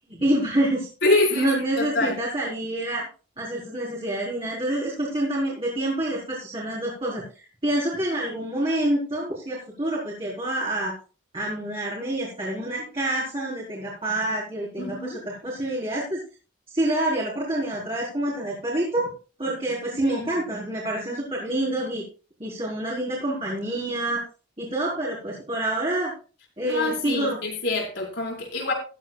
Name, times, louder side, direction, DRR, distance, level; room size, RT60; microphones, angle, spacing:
voice 1, 0.1-0.9 1.4-3.1 3.4-7.2 7.6-10.9 11.3-16.2 16.7-19.1 19.4-22.0 22.4-24.2 24.6-26.1 26.6-27.4, right 1 dB, 30° right, 4.4 m, -27 dB
voice 2, 1.0-2.2 14.8-15.2 20.0-20.4 26.6-28.7, left 2 dB, 60° left, 5.2 m, -26 dB
16.5 x 12.5 x 2.4 m
head